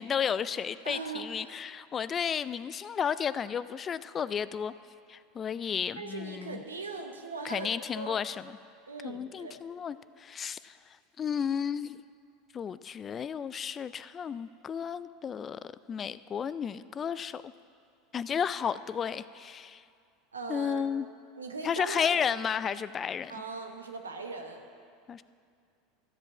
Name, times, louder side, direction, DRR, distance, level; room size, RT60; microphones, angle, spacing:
voice 1, 0.0-4.7 5.1-6.6 7.4-8.5 9.0-12.0 12.5-15.6 15.9-17.5 18.1-19.8 20.5-21.1 21.6-23.4 25.1-25.2, left 7 dB, 30° left, 16 dB, 0.3 m, -33 dB
voice 2, 0.8-1.6 6.0-8.2 8.9-9.6 20.3-20.9 21.4-22.2 23.3-24.6, right 4 dB, 90° right, 4 dB, 0.9 m, -40 dB
13.0 x 5.3 x 7.2 m, 2.4 s
hypercardioid pair, 80°, 0 cm